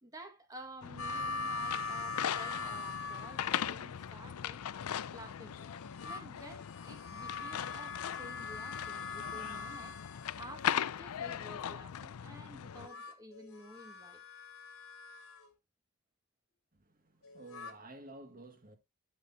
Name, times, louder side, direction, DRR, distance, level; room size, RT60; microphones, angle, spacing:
voice 1, 0.0-4.6 5.1-5.7 6.0-14.2 17.7-17.8, right 1 dB, 15° right, 1.8 m, -52 dB
sound 1, 0.8-12.9, left 9 dB, 90° left, 0.5 m, -39 dB
sound 2, 1.0-3.8 5.6-10.8 12.7-15.5 17.2-17.7, left 4 dB, 70° left, 2.0 m, -42 dB
voice 2, 16.7-18.8, right 2 dB, 40° right, 1.9 m, -52 dB
12.0 x 6.6 x 2.7 m
head